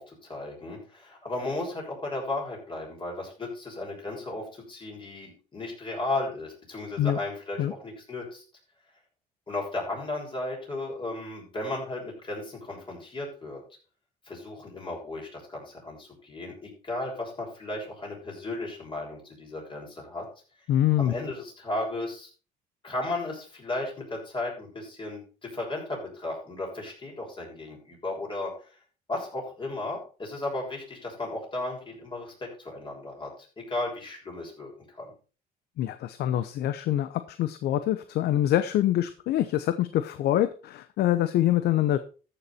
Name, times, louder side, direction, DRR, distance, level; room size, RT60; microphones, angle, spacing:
voice 1, 0.0-8.4 9.5-13.6 14.2-20.3 21.0-22.3 22.8-28.5 29.1-33.3 33.6-35.1, left 2 dB, 30° left, -1 dB, 6.7 m, -35 dB
voice 2, 20.7-21.1 35.8-42.0, left 12 dB, 70° left, 12 dB, 0.8 m, -25 dB
14.0 x 7.1 x 4.3 m, 0.36 s
cardioid pair, 110°, 17 cm